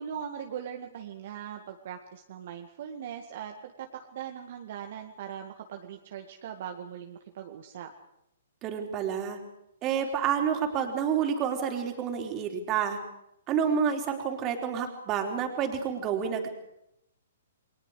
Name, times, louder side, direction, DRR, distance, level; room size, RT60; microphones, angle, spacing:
voice 1, 0.0-7.9, right 8 dB, 50° right, 4 dB, 1.9 m, -40 dB
voice 2, 8.6-9.4 9.8-13.0 13.5-16.5, right 7 dB, 30° right, 4 dB, 3.9 m, -29 dB
29.5 x 22.5 x 5.0 m, 0.82 s
figure-of-eight pair, 120°, 0 cm